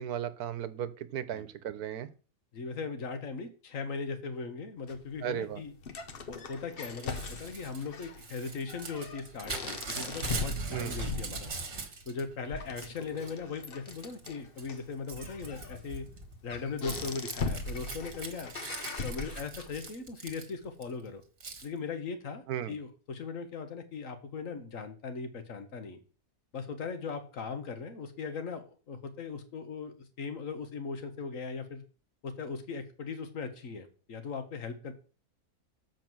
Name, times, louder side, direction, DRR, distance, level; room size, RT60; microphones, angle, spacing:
voice 1, 0.0-2.1 5.2-5.6 10.7-11.0 22.5-22.7, right 10 dB, 90° right, 13 dB, 1.3 m, -35 dB
voice 2, 2.5-5.7 6.3-11.5 12.1-16.0 16.4-18.6 19.0-21.2 21.6-26.0 26.5-31.8 32.2-34.9, left 4 dB, 60° left, 8 dB, 1.5 m, -39 dB
sound 1, 4.9-19.9, left 3 dB, 45° left, 0.9 m, -41 dB
Crumpling crinkling / Tearing, 7.0-12.2 12.6-13.3 13.9-14.3 14.6-20.8 21.4-21.7, right 3 dB, 50° right, 1.7 m, -41 dB
7.3 x 5.2 x 6.1 m, 0.38 s
omnidirectional pair, 1.6 m